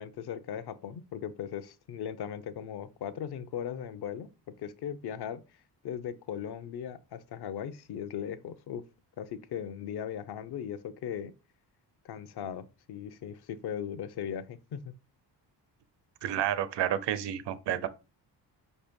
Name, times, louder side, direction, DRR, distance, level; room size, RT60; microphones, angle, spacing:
voice 1, 0.0-4.3 4.6-5.4 5.8-8.8 9.2-11.3 12.0-14.9, left 8 dB, 65° left, 0.8 m, -38 dB
voice 2, 16.2-17.9, right 11 dB, 80° right, 0.8 m, -30 dB
5.4 x 4.2 x 5.2 m
cardioid pair, 135°, 41 cm